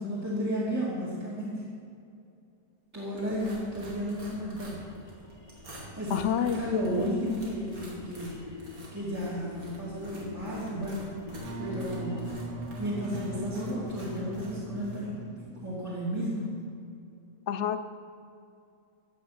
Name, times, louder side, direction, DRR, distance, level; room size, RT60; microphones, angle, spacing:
voice 1, 0.0-1.6 2.9-4.8 5.9-8.6 8.9-11.1 11.6-12.2 12.8-15.2 15.6-16.5, equal, 10° right, -8 dB, 2.4 m, -33 dB
sound 1, 3.2-15.0, right 1 dB, 85° right, 2.9 m, -48 dB
sound 2, 4.0-12.5, left 4 dB, 25° left, 1.7 m, -47 dB
voice 2, 6.1-7.1 17.5-17.8, left 9 dB, 65° left, 11 dB, 0.8 m, -29 dB
Wind instrument woodwind instrument, 11.3-15.8, right 2 dB, 60° right, 2.4 m, -40 dB
14.5 x 8.6 x 5.9 m, 2.5 s
omnidirectional pair, 1.5 m